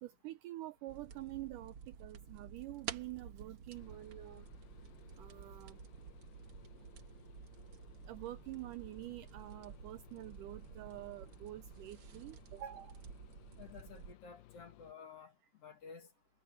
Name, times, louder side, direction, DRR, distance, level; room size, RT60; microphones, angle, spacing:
voice 1, 0.0-4.5 5.2-5.8 8.1-12.9, right 16 dB, 80° right, 1.9 m, -47 dB
sound 1, 0.9-14.1, right 7 dB, 60° right, 1.4 m, -51 dB
sound 2, 3.7-14.9, left 15 dB, 85° left, 2.7 m, -61 dB
voice 2, 13.6-15.3 15.6-16.1, left 6 dB, 50° left, 2.3 m, -52 dB
omnidirectional pair, 4.3 m